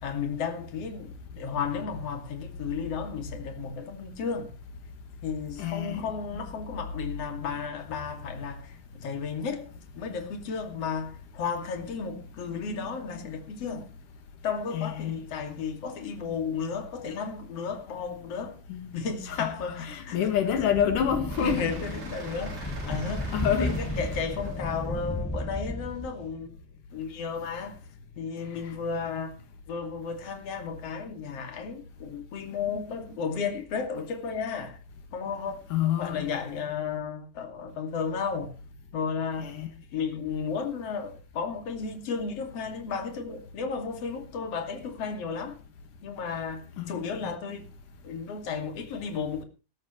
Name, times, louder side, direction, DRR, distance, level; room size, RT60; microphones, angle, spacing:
voice 1, 0.0-4.5 5.2-13.9 14.4-18.6 18.9-20.2 21.4-26.5 26.9-27.8 28.2-29.3 29.7-34.8 35.1-35.6 36.0-38.5 38.9-39.5 39.9-45.6 46.0-47.7 48.0-49.4, left 5 dB, 50° left, 3.4 m, -33 dB
voice 2, 5.6-6.1 14.7-15.1 18.7-18.9 19.3-19.5 19.8-21.6 23.3-23.8 35.7-36.3 39.4-39.7 46.8-47.1, left 9 dB, 80° left, 3.3 m, -27 dB
sound 1, 20.3-26.5, left 1 dB, 5° left, 1.1 m, -34 dB
sound 2, 21.3-26.3, right 3 dB, 75° right, 6.1 m, -44 dB
19.5 x 14.0 x 3.1 m
omnidirectional pair, 3.7 m